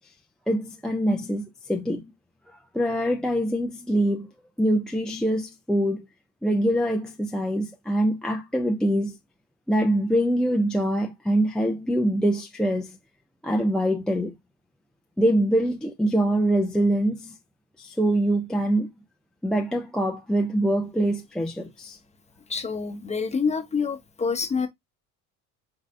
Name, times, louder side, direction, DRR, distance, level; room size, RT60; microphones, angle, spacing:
voice 1, 0.5-2.1 2.7-4.3 4.6-6.0 6.4-9.1 9.7-12.9 13.4-14.3 15.2-17.3 17.8-18.9 19.4-22.0, right 1 dB, ahead, 0.4 m, -24 dB
voice 2, 22.5-24.7, left 5 dB, 20° left, 0.8 m, -27 dB
5.1 x 4.0 x 2.5 m
cardioid pair, 125°, 36 cm